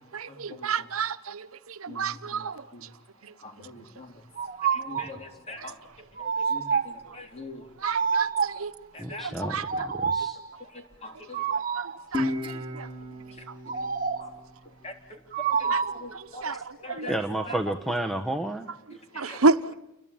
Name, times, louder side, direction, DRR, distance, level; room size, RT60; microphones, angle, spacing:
voice 1, 0.1-2.6 3.2-3.3 5.6-5.7 7.8-8.7 9.1-9.9 11.8-12.9 15.7-17.1 19.2-19.7, right 4 dB, 85° right, 1.0 m, -30 dB
voice 2, 3.4-4.1 4.7-5.7 6.2-7.6 8.9-9.5 11.0-11.4 14.8-14.9 15.6-16.6 16.8-17.2 19.1-19.4, left 2 dB, 30° left, 3.8 m, -42 dB
sound 1, 4.4-5.2 6.2-7.1 7.8-8.7 9.6-10.5 11.3-12.0 13.7-14.4 15.3-16.1, right 6 dB, 40° right, 1.0 m, -28 dB
voice 3, 9.0-10.4 16.5-16.6 17.0-18.7, right 1 dB, ahead, 1.1 m, -31 dB
Guitar, 12.1-15.4, left 2 dB, 25° right, 2.9 m, -35 dB
30.0 x 22.0 x 8.9 m
head